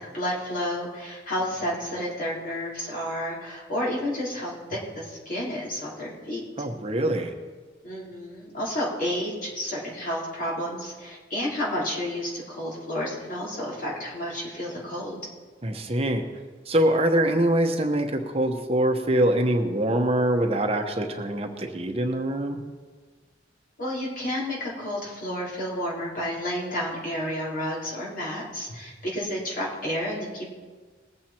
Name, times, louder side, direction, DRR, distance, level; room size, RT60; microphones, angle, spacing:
voice 1, 0.0-6.4 7.8-15.2 23.8-30.5, equal, 50° left, -5 dB, 4.0 m, -31 dB
voice 2, 6.6-7.3 15.6-16.2 16.7-22.6, right 1 dB, 35° right, 4 dB, 1.0 m, -24 dB
20.0 x 7.7 x 4.4 m, 1.4 s
head